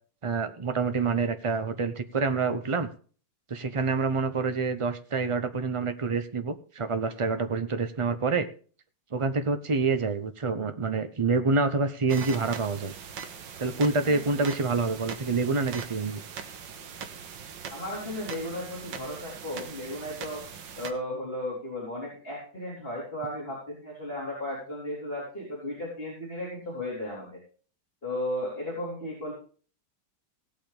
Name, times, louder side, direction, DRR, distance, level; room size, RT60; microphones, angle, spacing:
voice 1, 0.2-2.9 3.5-8.5 9.1-12.9 13.6-16.2, right 4 dB, 45° right, 9 dB, 0.4 m, -27 dB
sound 1, 12.1-20.9, right 7 dB, 85° right, 1.9 m, -41 dB
voice 2, 17.7-20.4 20.8-27.4 28.0-29.3, left 1 dB, 30° left, -7 dB, 4.3 m, -35 dB
18.0 x 8.6 x 3.4 m, 0.42 s
omnidirectional pair, 2.0 m